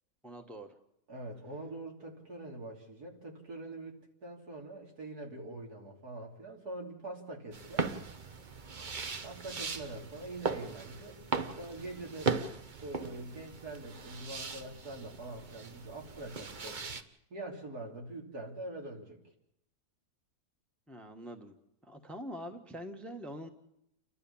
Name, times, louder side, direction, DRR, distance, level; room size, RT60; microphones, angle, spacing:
voice 1, 0.2-0.8 20.9-21.6 21.8-23.5, equal, ahead, 5 dB, 1.2 m, -44 dB
voice 2, 1.1-7.9 9.2-11.2 11.6-12.3 12.8-16.8 17.3-19.2, right 2 dB, 70° right, -1 dB, 3.7 m, -44 dB
sound 1, 7.5-17.0, right 4 dB, 35° right, 0.9 m, -38 dB
29.5 x 12.5 x 7.1 m, 0.81 s
omnidirectional pair, 1.7 m